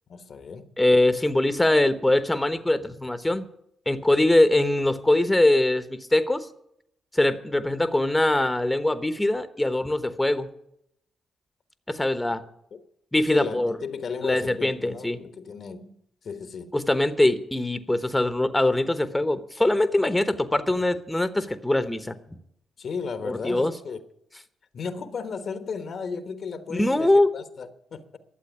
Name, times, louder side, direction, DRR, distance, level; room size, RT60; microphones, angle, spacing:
voice 1, 0.1-0.7 12.7-12.8 13.3-15.9 16.2-16.7 22.8-24.0 24.7-28.2, left 5 dB, 60° left, 1.2 m, -35 dB
voice 2, 0.8-3.5 3.9-6.5 7.1-10.5 11.9-12.4 13.1-13.8 14.2-15.2 16.7-22.2 23.2-23.7 26.7-27.3, left 1 dB, 15° left, 1.1 m, -22 dB
12.0 x 7.7 x 10.0 m
supercardioid pair, 50°, 0 cm